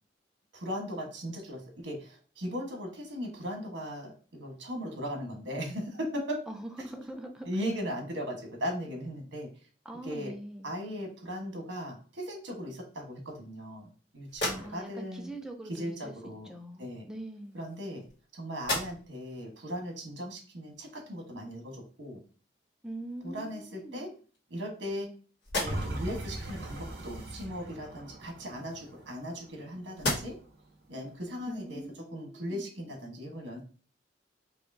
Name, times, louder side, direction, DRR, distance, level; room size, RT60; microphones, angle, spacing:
voice 1, 0.5-6.4 7.4-9.5 10.0-10.3 10.6-15.3 15.7-16.5 16.8-17.1 17.5-18.0 18.3-22.2 23.2-24.1 24.5-25.1 25.6-30.4 30.9-31.8 32.1-33.6, equal, 75° right, 2 dB, 1.3 m, -38 dB
voice 2, 6.5-7.5 9.8-10.7 14.4-17.6 22.8-24.1 31.5-32.7, right 1 dB, 5° right, 3 dB, 0.5 m, -43 dB
sound 1, 14.3-15.1 16.2-16.4 17.3-18.2 18.5-19.3 19.8-19.9 22.5-22.6 23.1-23.8 24.3-25.1 25.4-26.1 28.1-29.6 29.9-30.6, left 1 dB, 75° left, 1.8 m, -37 dB
sound 2, 25.6-30.7 31.2-31.3, right 1 dB, 60° right, 0.9 m, -40 dB
4.8 x 2.7 x 2.7 m, 0.39 s
head